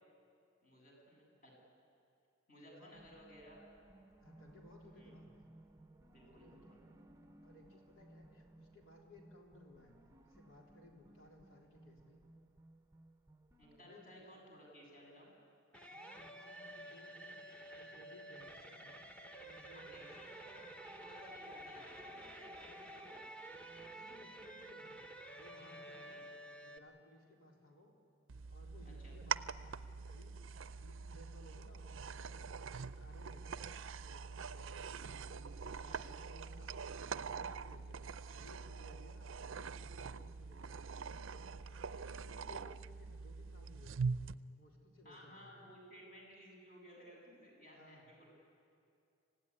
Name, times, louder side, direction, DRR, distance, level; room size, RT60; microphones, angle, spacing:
voice 1, 0.6-1.5 2.5-3.6 5.0-5.1 6.1-6.8 13.6-15.3 19.7-23.2 26.2-26.3 28.8-29.2 35.8-36.0 45.0-48.3, equal, 45° left, -1 dB, 7.7 m, -58 dB
voice 2, 2.7-3.2 4.2-5.5 6.3-6.8 7.4-10.0 10.3-12.2 13.7-14.3 15.9-19.0 19.4-20.1 22.6-22.8 23.9-25.0 25.3-26.2 26.5-27.9 28.5-29.7 30.0-32.4 32.7-33.8 34.0-34.9 35.2-36.7 37.0-38.0 38.3-39.3 39.6-44.1 44.5-45.6 47.7-48.1, left 1 dB, 90° left, -1 dB, 3.7 m, -61 dB
sound 1, 2.9-13.8, right 1 dB, 15° right, 0.7 m, -62 dB
sound 2, 15.7-26.8, right 1 dB, 5° left, 1.1 m, -51 dB
sound 3, 28.3-44.3, right 5 dB, 75° right, 0.5 m, -44 dB
26.0 x 16.0 x 9.8 m, 2.5 s
head